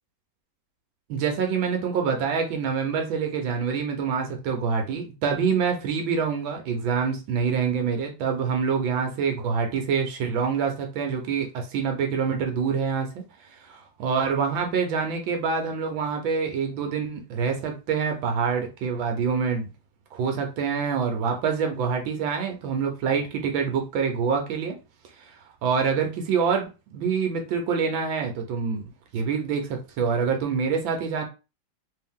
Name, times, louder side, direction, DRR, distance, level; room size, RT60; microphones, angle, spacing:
voice 1, 1.1-19.7 20.1-24.8 25.2-28.8 29.1-31.2, right 6 dB, 80° right, 3 dB, 1.5 m, -26 dB
3.8 x 2.7 x 3.6 m, 0.30 s
omnidirectional pair, 2.1 m